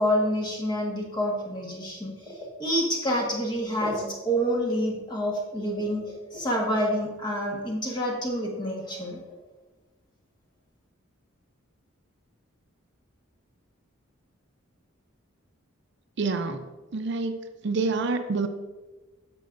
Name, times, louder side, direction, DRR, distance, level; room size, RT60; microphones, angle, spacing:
voice 1, 0.0-6.0 6.3-9.2, equal, 20° left, -2 dB, 1.4 m, -28 dB
voice 2, 16.2-16.7 16.9-17.4 17.6-18.5, right 3 dB, 55° right, 8 dB, 0.5 m, -27 dB
10.5 x 6.7 x 2.5 m, 1.2 s
head